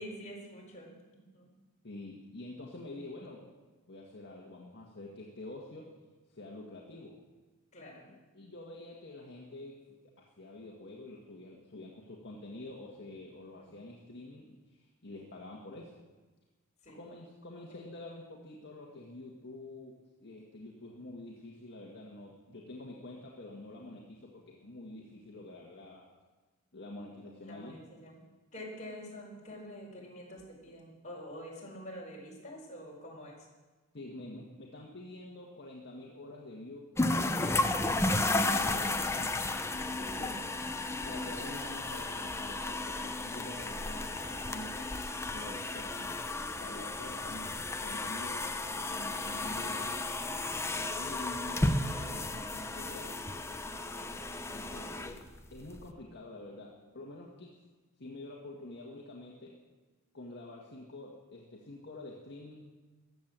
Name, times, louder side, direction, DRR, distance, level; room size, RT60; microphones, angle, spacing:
voice 1, 0.0-1.5 7.7-8.1 13.6-13.8 16.8-17.0 27.4-28.2 28.5-33.4 40.1-40.3 53.9-54.1 54.5-54.9, equal, 35° left, -3 dB, 4.8 m, -47 dB
voice 2, 1.8-3.5 3.9-5.9 6.3-7.2 8.1-15.9 16.9-26.1 26.7-27.8 33.9-36.9 37.9-39.6 39.9-40.5 41.0-45.0 45.3-46.1 46.6-48.6 48.8-50.0 50.7-53.2 54.5-57.6 58.0-59.5 60.1-62.8, left 2 dB, 50° left, -2 dB, 1.6 m, -47 dB
sound 1, 37.0-55.8, left 2 dB, 10° left, 0.7 m, -33 dB
15.0 x 10.5 x 7.5 m, 1.3 s
head